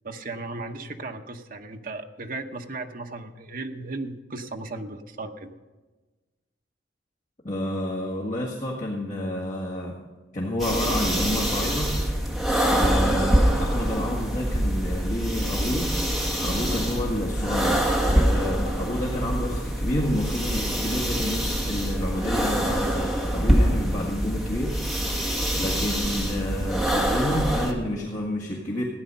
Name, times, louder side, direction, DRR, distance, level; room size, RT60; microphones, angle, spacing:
voice 1, 0.0-5.5, right 2 dB, 50° right, 5 dB, 1.0 m, -36 dB
voice 2, 7.4-10.0 10.3-12.0 12.6-15.9 16.4-24.8 25.2-25.3 25.6-28.8, left 1 dB, 45° left, -4 dB, 1.8 m, -29 dB
sound 1, 10.6-27.7, equal, ahead, 1.6 m, -25 dB
15.5 x 9.9 x 5.5 m, 1.2 s
head